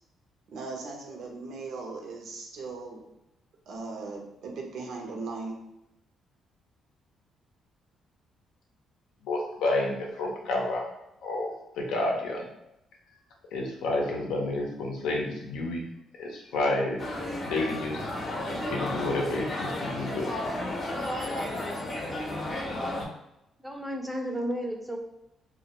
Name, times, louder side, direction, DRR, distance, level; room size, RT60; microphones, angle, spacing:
voice 1, 0.5-3.0 3.7-5.6, right 3 dB, 75° right, 1 dB, 0.5 m, -38 dB
voice 2, 9.2-10.9 11.2-12.4 13.5-15.8 16.2-17.0 17.4-18.1 18.5-20.3, left 2 dB, 90° left, 0 dB, 0.5 m, -30 dB
sound 1, 17.0-23.1, left 1 dB, 45° left, 0.6 m, -33 dB
voice 3, 23.6-25.0, equal, 5° right, 2 dB, 0.4 m, -32 dB
2.1 x 2.1 x 2.8 m, 0.85 s
cardioid pair, 90°, 0 cm